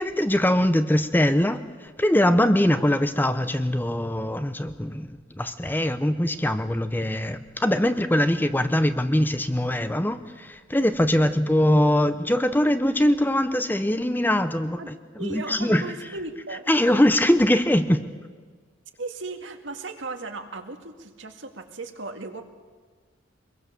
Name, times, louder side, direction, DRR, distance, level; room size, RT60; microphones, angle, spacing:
voice 1, 0.0-15.0 15.2-16.1 16.4-18.0, left 1 dB, 10° left, 10 dB, 0.8 m, -22 dB
voice 2, 15.2-16.7 19.0-22.4, right 2 dB, 75° right, 5 dB, 2.0 m, -36 dB
24.0 x 22.0 x 6.9 m, 1.5 s
head